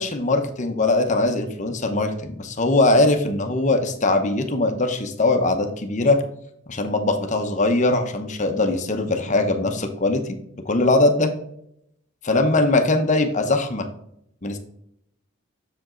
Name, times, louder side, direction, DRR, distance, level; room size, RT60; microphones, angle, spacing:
voice 1, 0.0-6.2 6.7-10.3 10.6-11.3 12.2-13.9 14.4-14.6, left 2 dB, 35° left, 6 dB, 0.8 m, -21 dB
6.8 x 5.1 x 3.8 m, 0.75 s
head